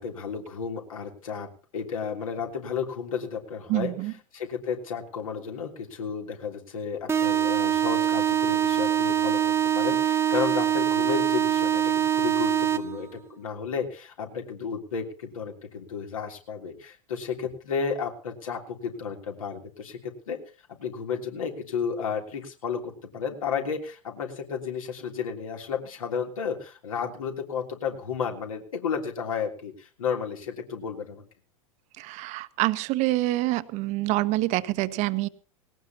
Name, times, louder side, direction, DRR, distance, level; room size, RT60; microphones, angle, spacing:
voice 1, 0.0-3.9 4.3-20.4 20.7-31.2, left 6 dB, 75° left, 3 dB, 3.3 m, -32 dB
voice 2, 3.7-4.1 32.0-35.3, right 18 dB, 40° right, 13 dB, 0.9 m, -26 dB
sound 1, 7.1-13.1, right 9 dB, 15° right, 0.8 m, -24 dB
19.0 x 18.0 x 2.9 m, 0.36 s
figure-of-eight pair, 95°, 18 cm